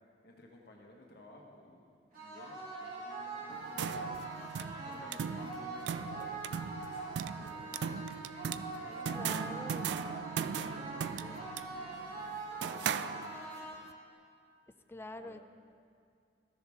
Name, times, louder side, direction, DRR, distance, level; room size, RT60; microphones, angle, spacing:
voice 1, 0.2-4.3 4.8-8.1 8.7-10.3 10.7-12.8 13.1-13.4 15.2-15.4, left 1 dB, 60° left, 0 dB, 1.4 m, -56 dB
sound 1, 2.1-14.1, right 2 dB, 50° right, 2.8 m, -43 dB
sound 2, 3.5-13.6, right 7 dB, 70° right, 0.3 m, -39 dB
voice 2, 8.8-10.0 10.8-10.9 14.9-15.4, left 1 dB, 15° left, 9 dB, 0.3 m, -46 dB
13.0 x 10.5 x 3.5 m, 2.4 s
head